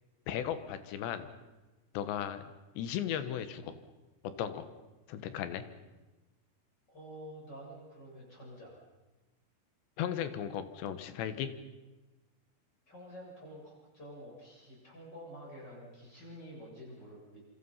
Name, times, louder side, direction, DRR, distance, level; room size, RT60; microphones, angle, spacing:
voice 1, 0.3-1.3 2.0-2.4 2.8-3.7 4.4-4.7 5.1-5.6 10.0-11.5, left 10 dB, 85° left, 11 dB, 3.6 m, -36 dB
voice 2, 6.9-8.8 12.9-17.4, equal, 25° left, -3 dB, 8.2 m, -49 dB
27.0 x 26.0 x 5.7 m, 1.1 s
omnidirectional pair, 4.9 m